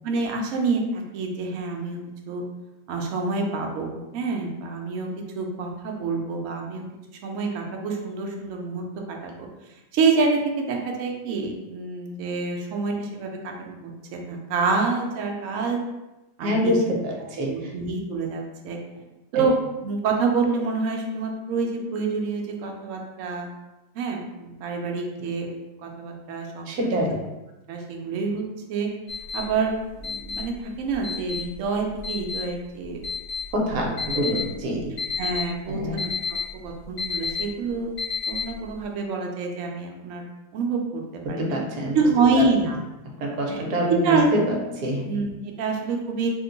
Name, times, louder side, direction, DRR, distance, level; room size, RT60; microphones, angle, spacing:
voice 1, 0.0-2.0 2.3-2.4 2.9-5.1 5.3-6.8 7.2-9.5 9.9-15.8 16.4-16.8 17.4-18.8 19.3-19.6 19.8-23.5 23.9-25.5 25.8-27.0 27.7-28.4 28.7-28.9 29.3-29.7 30.0-33.0 35.2-36.1 36.6-37.9 38.3-40.2 40.5-41.0 41.3-41.6 41.9-42.8 43.5-44.3 45.1-45.3 45.6-46.3, right 4 dB, 85° right, 1 dB, 0.7 m, -27 dB
voice 2, 16.4-17.7 19.3-19.5 26.7-27.2 33.5-34.9 35.7-36.0 41.2-42.5 43.2-45.1, equal, 70° right, 0 dB, 1.1 m, -26 dB
sound 1, 29.1-38.8, left 5 dB, 70° left, 1.4 m, -31 dB
2.9 x 2.2 x 3.7 m, 1.0 s
omnidirectional pair, 1.9 m